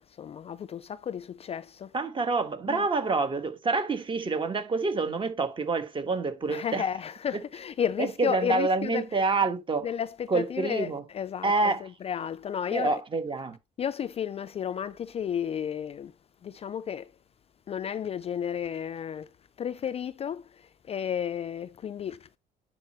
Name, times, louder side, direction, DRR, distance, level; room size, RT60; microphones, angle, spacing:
voice 1, 0.0-1.9 2.7-2.9 6.5-9.1 9.8-13.0 13.8-16.1 16.4-17.1 17.7-19.3 19.6-22.4, left 8 dB, 35° left, 0.4 m, -33 dB
voice 2, 1.9-6.8 8.0-9.9 10.3-11.0 11.4-11.9 12.7-13.6, right 3 dB, 30° right, 1.5 m, -27 dB
10.5 x 4.3 x 3.0 m
cardioid pair, 110°, 17 cm